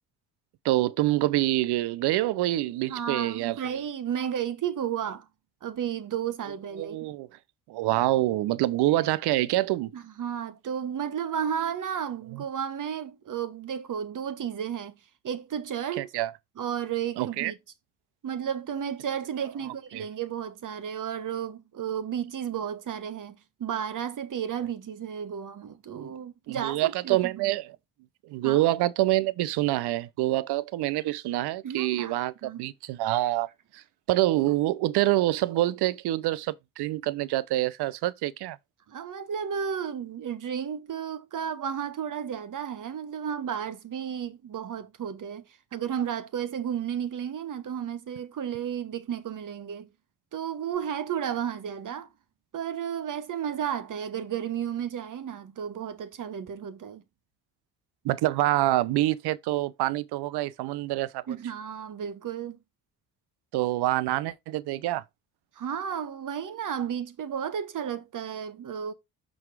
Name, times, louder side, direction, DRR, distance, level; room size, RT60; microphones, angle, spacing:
voice 1, 0.6-3.6 6.8-7.3 7.7-9.9 12.3-12.4 16.0-16.3 17.2-17.5 19.6-20.0 26.0-26.1 26.5-27.7 28.3-33.5 33.7-33.8 34.1-38.6 58.0-61.4 63.5-65.0, right 16 dB, 65° right, 0.7 m, -26 dB
voice 2, 2.9-5.3 5.6-7.1 9.9-14.9 15.2-16.1 16.6-17.6 18.2-27.5 28.4-28.6 31.6-32.6 38.9-45.4 45.7-49.9 50.3-52.1 52.5-57.0 61.3-62.6 65.6-68.9, right 8 dB, 45° right, 1.3 m, -33 dB
6.2 x 4.3 x 4.8 m
hypercardioid pair, 65°, 43 cm